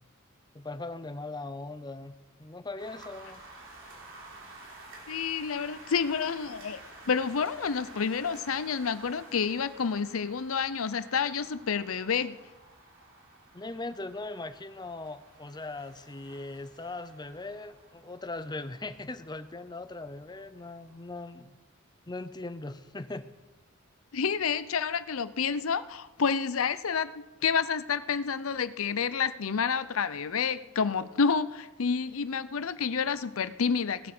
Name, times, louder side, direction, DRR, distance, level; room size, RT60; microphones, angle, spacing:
voice 1, 0.5-2.1 2.4-3.4 13.5-21.5 22.1-23.3, left 2 dB, 20° left, 12 dB, 0.7 m, -39 dB
sound 1, 2.8-21.4, right 2 dB, 65° right, 3.6 m, -52 dB
voice 2, 5.1-12.4 24.1-34.1, left 6 dB, 75° left, 14 dB, 0.6 m, -29 dB
17.0 x 8.6 x 6.1 m, 1.1 s
head